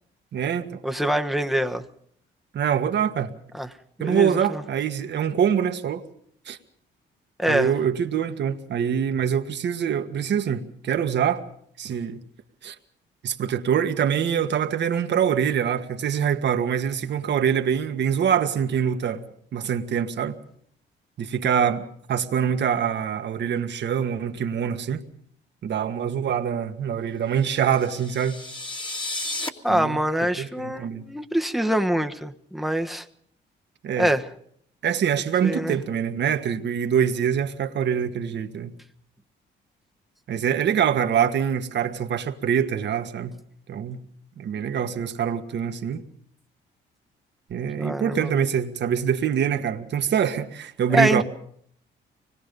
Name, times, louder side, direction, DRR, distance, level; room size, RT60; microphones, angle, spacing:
voice 1, 0.3-0.8 2.5-3.3 4.0-6.0 6.5-6.6 7.5-11.4 11.8-12.2 12.6-12.8 13.2-19.2 19.5-20.4 21.2-25.0 25.6-28.4 29.7-30.0 30.4-31.1 33.8-34.1 34.8-38.7 40.3-43.3 43.7-44.0 44.4-46.0 47.5-51.2, right 8 dB, 60° right, 1.7 m, -24 dB
voice 2, 0.8-1.8 3.5-3.7 4.0-4.6 7.4-7.7 29.6-33.1 34.0-34.3 35.4-35.8 47.8-48.4 50.9-51.2, right 1 dB, ahead, 1.3 m, -24 dB
sound 1, 27.6-29.5, left 2 dB, 25° left, 2.2 m, -33 dB
25.0 x 20.0 x 5.4 m
cardioid pair, 90°, 20 cm